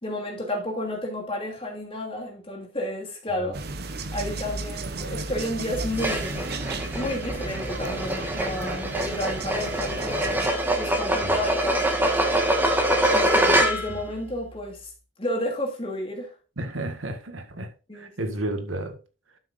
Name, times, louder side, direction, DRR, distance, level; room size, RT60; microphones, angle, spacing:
voice 1, 0.0-3.6 4.1-6.4 6.9-10.5 10.8-11.9 13.1-14.9 15.2-16.3 17.9-18.3, left 1 dB, 30° left, 2.8 m, -31 dB
sound 1, 3.5-10.5, right 3 dB, 50° right, 0.9 m, -34 dB
sound 2, 5.9-14.0, right 1 dB, 10° right, 1.6 m, -24 dB
voice 2, 16.6-19.0, right 1 dB, 85° right, 1.8 m, -32 dB
12.5 x 6.2 x 2.6 m
head